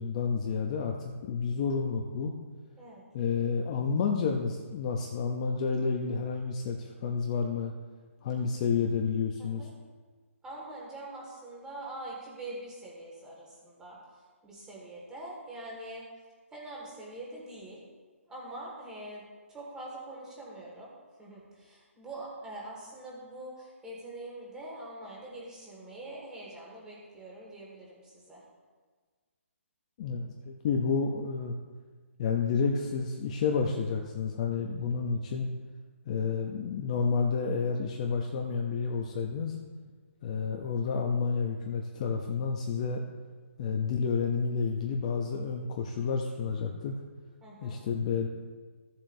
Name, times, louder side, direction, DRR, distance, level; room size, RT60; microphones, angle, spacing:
voice 1, 0.0-2.3 3.1-7.7 8.2-9.7 30.0-31.6 32.2-35.5 36.1-39.6 40.2-43.0 43.6-46.9 47.6-48.3, left 5 dB, 30° left, 3 dB, 0.7 m, -30 dB
voice 2, 9.4-9.7 10.4-16.1 16.5-17.8 18.3-20.9 21.2-28.4 47.4-47.8, right 1 dB, 10° right, -4 dB, 2.0 m, -44 dB
15.5 x 7.3 x 2.7 m, 1.5 s
hypercardioid pair, 165°, 8 cm